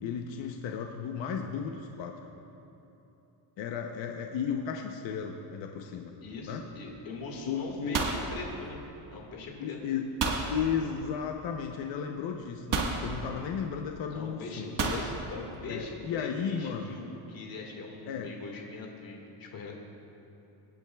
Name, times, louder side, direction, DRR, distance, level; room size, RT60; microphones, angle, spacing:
voice 1, 0.0-2.1 3.6-6.2 6.5-6.6 7.5-8.0 9.6-10.1 10.5-14.7 15.7-17.0 18.1-18.3, left 7 dB, 60° left, 3 dB, 0.8 m, -34 dB
voice 2, 6.2-8.8 9.1-9.8 14.1-19.7, left 3 dB, 45° left, 0 dB, 1.9 m, -41 dB
sound 1, 6.3-6.6 6.9-7.3 7.6-9.2 10.2-10.5 11.7-11.8 12.7-13.1 14.8-15.1, right 4 dB, 40° right, 1.4 m, -30 dB
23.0 x 10.5 x 2.3 m, 2.9 s
cardioid pair, 140°, 49 cm